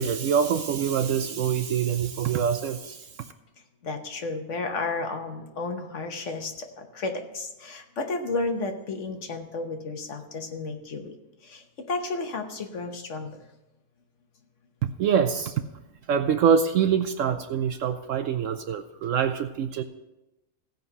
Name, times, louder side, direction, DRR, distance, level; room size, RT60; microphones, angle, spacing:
voice 1, 0.0-3.3 14.8-15.6 16.1-19.8, right 7 dB, 70° right, 9 dB, 0.8 m, -25 dB
voice 2, 3.8-11.1 11.4-13.4, left 3 dB, 55° left, 5 dB, 1.2 m, -32 dB
15.5 x 5.3 x 5.4 m, 0.99 s
omnidirectional pair, 1.6 m